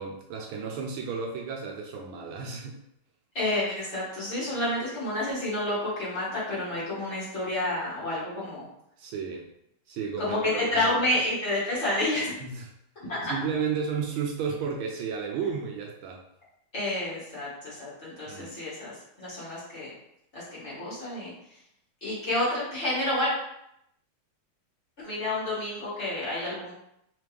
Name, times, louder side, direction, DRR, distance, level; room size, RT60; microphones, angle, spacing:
voice 1, 0.0-2.8 9.0-9.5 9.9-11.0 12.4-12.6 13.3-16.2 18.3-18.6, right 6 dB, 75° right, 1 dB, 1.3 m, -33 dB
voice 2, 3.3-8.6 10.2-12.4 13.1-13.3 16.7-18.9 19.2-19.9 20.3-21.3 22.0-23.3 25.0-26.7, left 1 dB, 35° left, -9 dB, 1.6 m, -29 dB
3.9 x 3.1 x 3.3 m, 0.77 s
omnidirectional pair, 2.4 m